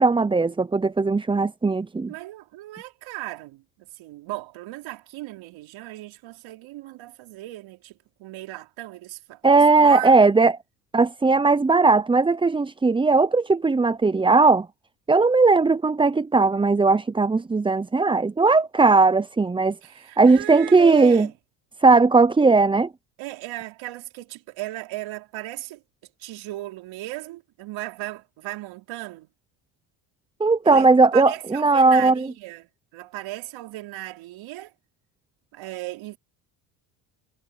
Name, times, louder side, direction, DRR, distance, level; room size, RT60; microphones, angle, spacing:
voice 1, 0.0-2.1 9.4-10.5 10.9-14.7 15.1-19.8 20.2-21.3 21.8-22.9 30.4-32.3, right 3 dB, 10° right, 0.6 m, -18 dB
voice 2, 2.1-10.3 19.8-21.3 23.2-25.8 26.2-29.3 30.6-34.7 35.5-36.2, right 17 dB, 65° right, 4.6 m, -36 dB
supercardioid pair, 80°, 49 cm